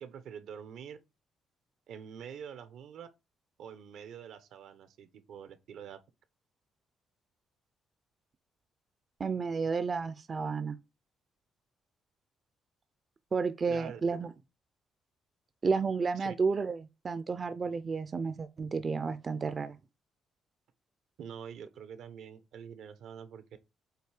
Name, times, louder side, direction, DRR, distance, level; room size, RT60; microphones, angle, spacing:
voice 1, 0.0-1.0 1.9-3.1 3.6-6.0 13.7-14.0 16.2-16.3 21.2-23.4, right 8 dB, 80° right, 1.0 m, -46 dB
voice 2, 9.2-10.8 13.3-14.3 15.6-19.8, right 5 dB, 40° right, 0.5 m, -31 dB
7.9 x 2.7 x 4.9 m
cardioid pair, 90°, 0 cm